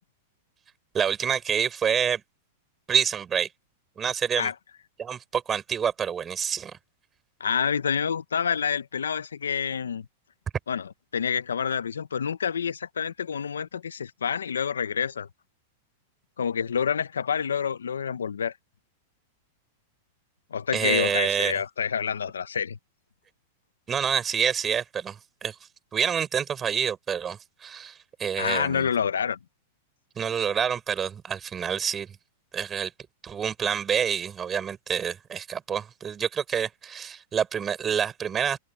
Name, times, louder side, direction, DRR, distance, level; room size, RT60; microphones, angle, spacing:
voice 1, 0.9-2.2 2.9-3.5 4.0-4.5 5.0-6.8 20.7-21.6 23.9-25.6 25.9-28.9 30.2-32.2 32.5-32.9 33.2-38.6, right 7 dB, 25° right, 7.3 m, -27 dB
voice 2, 7.4-10.1 10.7-15.3 16.4-18.5 20.5-22.8 28.4-29.4, left 7 dB, 90° left, 1.0 m, -28 dB
hypercardioid pair, 110°, 0 cm